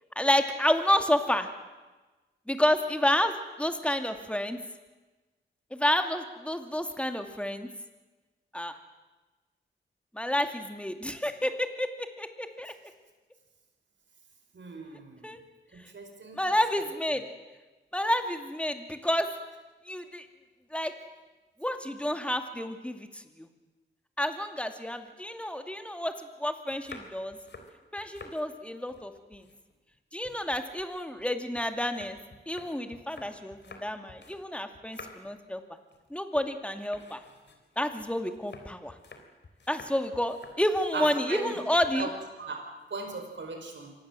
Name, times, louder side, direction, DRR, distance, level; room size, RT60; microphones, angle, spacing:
voice 1, 0.2-1.5 2.5-3.3 3.6-4.6 5.7-7.7 8.5-8.7 10.1-12.7 15.2-15.4 16.4-17.3 17.9-19.3 19.9-20.2 20.7-20.9 21.6-23.5 24.2-26.1 26.4-27.4 27.9-29.4 30.1-32.2 32.5-35.6 36.1-37.2 37.8-38.9 39.7-42.1, left 1 dB, 5° left, 6 dB, 2.4 m, -29 dB
voice 2, 14.5-15.2 15.7-16.9 40.9-41.5 41.9-43.9, right 3 dB, 65° right, 4 dB, 5.3 m, -38 dB
sound 1, 26.7-28.4 28.8-30.0 30.2-34.5 34.7-35.4 35.8-36.1 36.3-36.5 36.9-41.2 41.8-42.2 42.5-42.9, left 3 dB, 60° left, 3.6 m, -51 dB
25.0 x 18.5 x 7.7 m, 1.2 s
cardioid pair, 60°, 20 cm